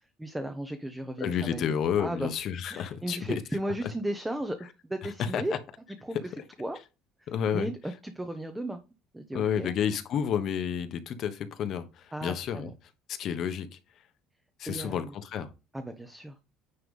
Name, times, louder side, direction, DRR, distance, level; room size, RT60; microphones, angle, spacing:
voice 1, 0.2-2.3 2.7-5.6 5.9-6.2 6.6-6.8 7.2-8.8 9.1-9.7 12.1-12.7 14.6-15.1 15.7-16.4, right 1 dB, 5° right, 0.8 m, -35 dB
voice 2, 1.2-3.4 5.2-5.6 7.3-7.7 9.3-12.7 13.1-13.8 14.6-15.5, left 8 dB, 50° left, 1.2 m, -30 dB
9.8 x 3.3 x 5.5 m
cardioid pair, 145°, 0 cm